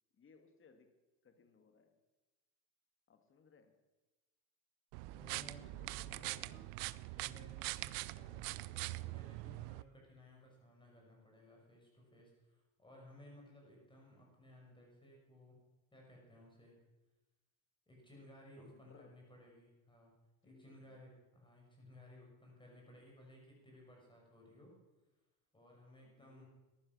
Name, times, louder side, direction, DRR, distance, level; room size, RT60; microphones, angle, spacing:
voice 1, 0.1-2.0 3.1-3.8 5.6-6.7 18.6-19.2 20.4-21.0 26.0-26.5, left 5 dB, 30° left, 8 dB, 2.0 m, -65 dB
sound 1, 4.9-9.8, right 20 dB, 70° right, 0.6 m, -43 dB
voice 2, 5.1-6.6 7.1-15.6 15.9-16.8 17.9-20.1 20.4-24.7 25.5-26.5, left 1 dB, 10° left, -1 dB, 6.2 m, -59 dB
15.0 x 11.0 x 6.2 m, 1.1 s
supercardioid pair, 105°, 40 cm